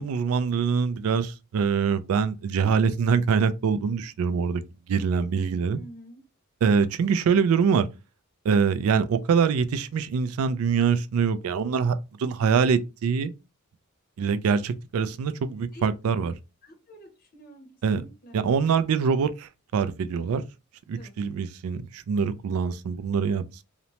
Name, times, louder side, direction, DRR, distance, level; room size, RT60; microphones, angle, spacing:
voice 1, 0.0-4.6 4.9-5.8 6.6-7.9 8.4-13.3 14.2-16.3 17.8-18.0 18.3-20.4 20.9-23.6, right 6 dB, 70° right, 0.3 m, -24 dB
voice 2, 5.7-6.2 15.7-15.9 16.6-17.7 17.9-18.3 20.9-21.1, right 1 dB, 40° left, 0.6 m, -47 dB
2.9 x 2.1 x 2.8 m
head